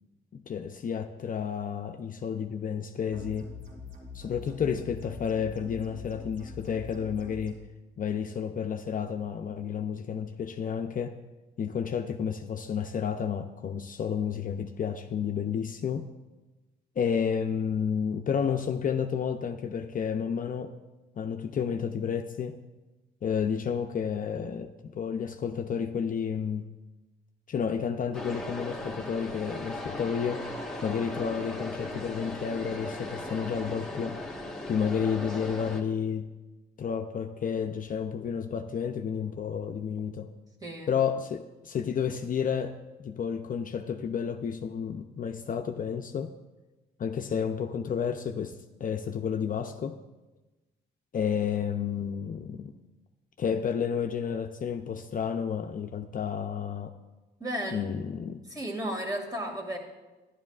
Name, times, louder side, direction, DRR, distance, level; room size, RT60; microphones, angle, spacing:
voice 1, 0.3-3.5 4.1-7.6 8.0-11.2 11.6-16.1 17.0-20.7 21.2-22.6 23.2-26.7 27.5-30.5 30.8-34.2 34.7-36.3 36.8-40.3 40.9-46.3 47.0-50.0 51.1-52.7 53.4-56.9 57.7-58.4, left 7 dB, 45° left, 0.5 m, -31 dB
sound 1, 3.1-7.5, left 4 dB, 45° right, 2.9 m, -44 dB
sound 2, 28.1-35.8, left 1 dB, ahead, 1.3 m, -38 dB
voice 2, 40.6-40.9 57.4-57.9 58.5-59.8, equal, 20° right, 2.1 m, -34 dB
12.5 x 11.0 x 2.4 m
cardioid pair, 90°, 20 cm